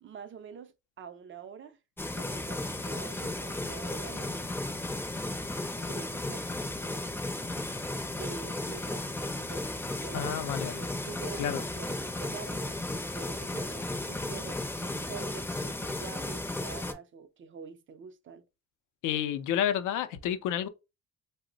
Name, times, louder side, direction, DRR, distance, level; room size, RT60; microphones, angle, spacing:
voice 1, 0.0-1.8 2.1-4.5 5.8-7.2 8.1-10.3 10.8-18.4, right 6 dB, 40° right, 0.5 m, -46 dB
sound 1, 2.0-16.9, left 2 dB, 5° left, 0.5 m, -35 dB
voice 2, 10.1-10.8 11.4-11.6 19.0-20.7, left 10 dB, 85° left, 0.5 m, -30 dB
2.8 x 2.0 x 3.9 m
cardioid pair, 90°, 30 cm